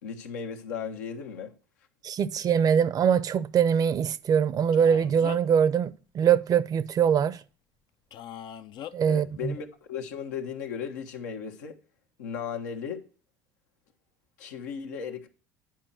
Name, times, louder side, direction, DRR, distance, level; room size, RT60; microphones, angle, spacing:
voice 1, 0.0-1.5 9.1-11.8 12.2-13.0 14.4-15.3, left 7 dB, 85° left, 1.3 m, -36 dB
voice 2, 2.0-7.4 8.9-9.5, right 8 dB, 45° right, 0.7 m, -23 dB
Male speech man speaking, 4.7-5.6 8.1-8.9, left 10 dB, 55° left, 0.6 m, -41 dB
10.5 x 4.4 x 7.5 m
hypercardioid pair, 80°, 9 cm